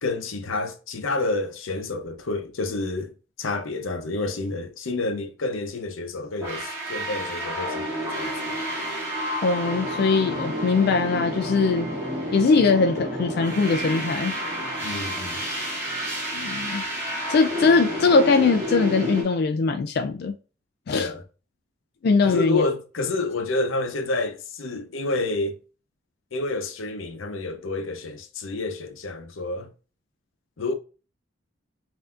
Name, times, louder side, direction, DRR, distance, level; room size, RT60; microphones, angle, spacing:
voice 1, 0.0-3.1 3.4-8.6 14.8-15.4 20.9-21.2 22.2-25.6 26.3-29.7 30.6-30.7, left 3 dB, 90° left, 0.7 m, -29 dB
sound 1, 6.4-19.2, equal, 15° right, 2.0 m, -30 dB
voice 2, 9.4-11.9 12.3-14.3 16.3-16.8 17.3-20.3 20.9-21.1 22.0-22.6, left 4 dB, 55° left, 0.3 m, -21 dB
5.5 x 2.7 x 2.4 m
head